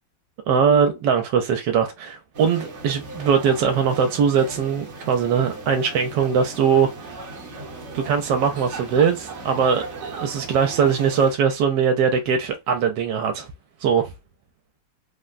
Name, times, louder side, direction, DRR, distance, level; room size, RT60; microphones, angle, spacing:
voice 1, 0.5-6.9 7.9-13.5 13.8-14.1, right 6 dB, 80° right, 1.2 m, -21 dB
sound 1, 2.3-11.3, right 3 dB, 50° right, 1.0 m, -37 dB
3.4 x 2.1 x 2.4 m
omnidirectional pair, 1.9 m